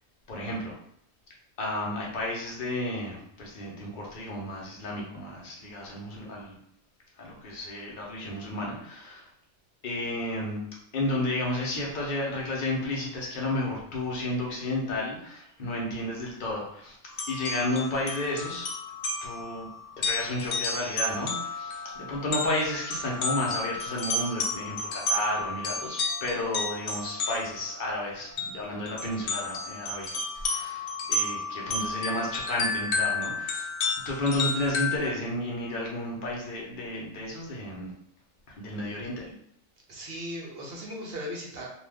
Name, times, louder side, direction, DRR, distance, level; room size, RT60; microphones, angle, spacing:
voice 1, 0.3-0.7 1.6-6.6 7.2-9.3 9.8-10.6 10.9-17.0 17.3-18.7 19.2-19.7 20.0-30.1 30.3-33.7 34.0-37.9 38.6-39.2, left 1 dB, 45° left, -3 dB, 0.8 m, -32 dB
sound 1, 17.1-27.7 28.4-28.5 28.9-35.0, left 3 dB, 75° left, 1.0 m, -32 dB
voice 2, 39.9-41.7, equal, 55° right, -2 dB, 0.9 m, -37 dB
2.7 x 2.4 x 3.4 m, 0.71 s
omnidirectional pair, 1.4 m